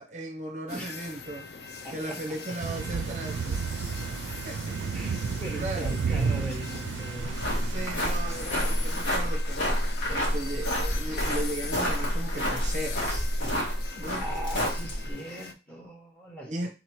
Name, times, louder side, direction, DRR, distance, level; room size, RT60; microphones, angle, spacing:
voice 1, 0.0-1.5 1.9-4.0 4.4-5.9 7.6-13.3 14.0-14.2 16.4-16.7, right 1 dB, 40° right, 2 dB, 0.6 m, -37 dB
sound 1, 0.7-15.5, left 5 dB, 60° left, 0.4 m, -42 dB
voice 2, 1.8-2.2 4.9-7.5 14.1-16.7, equal, 10° left, 0 dB, 1.0 m, -40 dB
Thunder / Rain, 2.6-9.2, right 5 dB, 90° right, 0.4 m, -32 dB
sound 2, 7.2-15.1, equal, 85° left, 1.9 m, -29 dB
3.8 x 2.8 x 4.5 m, 0.32 s
head